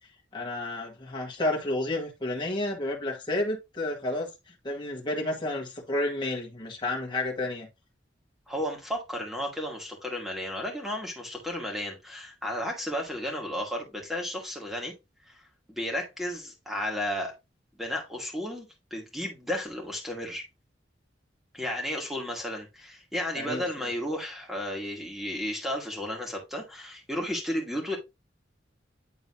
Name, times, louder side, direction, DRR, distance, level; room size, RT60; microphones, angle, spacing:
voice 1, 0.3-4.3 4.6-7.7 23.4-23.6, left 1 dB, 25° left, 1.8 m, -31 dB
voice 2, 8.5-14.9 15.3-15.4 15.7-17.3 17.8-20.4 21.5-28.0, left 1 dB, ahead, 2.3 m, -33 dB
9.8 x 3.9 x 2.7 m
head